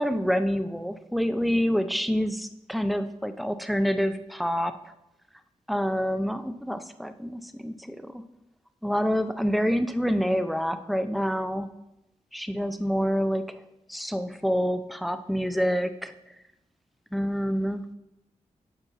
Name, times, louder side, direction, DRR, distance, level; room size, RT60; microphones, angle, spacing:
voice 1, 0.0-4.7 5.7-8.2 8.8-11.7 12.3-13.6 13.9-16.1 17.1-17.9, equal, ahead, 10 dB, 0.5 m, -27 dB
8.1 x 5.6 x 4.1 m, 0.89 s
wide cardioid pair, 90°, 13 cm